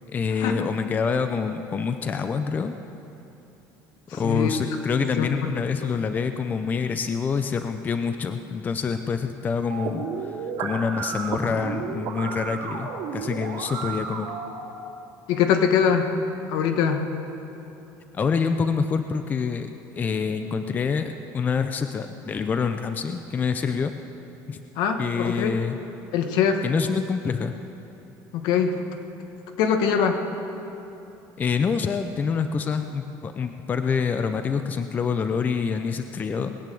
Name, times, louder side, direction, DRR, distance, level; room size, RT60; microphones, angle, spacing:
voice 1, 0.1-2.7 4.1-14.3 18.1-23.9 24.5-24.6 25.0-25.8 26.6-27.6 31.4-36.5, left 5 dB, 25° left, 8 dB, 0.5 m, -26 dB
voice 2, 4.2-4.5 5.2-5.5 5.8-5.9 15.3-16.1 16.5-17.0 24.8-25.6 26.1-26.6 28.3-28.8 29.6-30.2, left 7 dB, 70° left, 6 dB, 1.4 m, -22 dB
sound 1, 9.7-14.7, right 5 dB, 70° right, 2.6 m, -32 dB
20.0 x 8.9 x 7.6 m, 3.0 s
cardioid pair, 155°, 7 cm